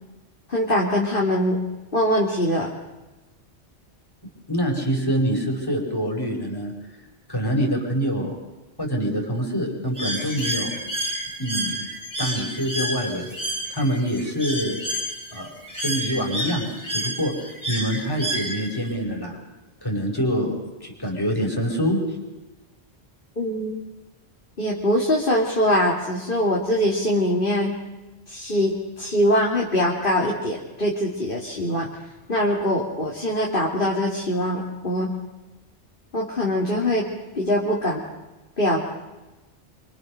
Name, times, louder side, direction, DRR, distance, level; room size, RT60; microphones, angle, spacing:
voice 1, 0.5-1.6 1.9-2.7 23.4-23.8 24.6-27.8 28.3-31.9 32.3-35.1 36.1-38.0 38.6-38.8, equal, 50° left, -2 dB, 3.1 m, -23 dB
voice 2, 4.5-6.7 7.3-8.3 8.8-10.7 11.4-11.8 12.2-13.3 13.7-14.8 15.3-15.5 15.8-19.4 19.8-22.0, equal, 20° left, 0 dB, 5.6 m, -25 dB
Bird, 10.0-18.9, right 1 dB, 15° right, 4.6 m, -30 dB
27.0 x 24.5 x 6.6 m, 1.1 s
omnidirectional pair, 1.2 m